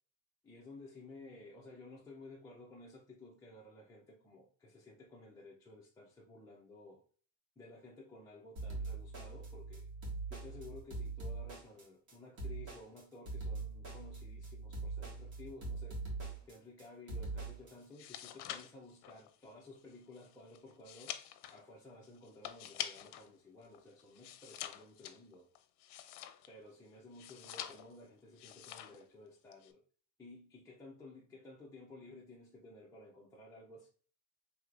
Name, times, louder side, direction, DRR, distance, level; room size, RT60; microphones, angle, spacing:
voice 1, 0.4-7.0 7.6-9.9 10.3-16.0 16.5-21.2 21.5-25.5 26.5-29.8 30.2-33.9, left 2 dB, 10° left, 0.3 m, -54 dB
sound 1, 8.6-17.7, right 3 dB, 85° right, 2.1 m, -42 dB
sound 2, 17.8-23.3 23.6-26.7 27.1-28.0 28.4-29.0 29.3-29.7, left 12 dB, 65° left, 0.6 m, -46 dB
4.6 x 3.3 x 2.4 m
cardioid pair, 175°, 43 cm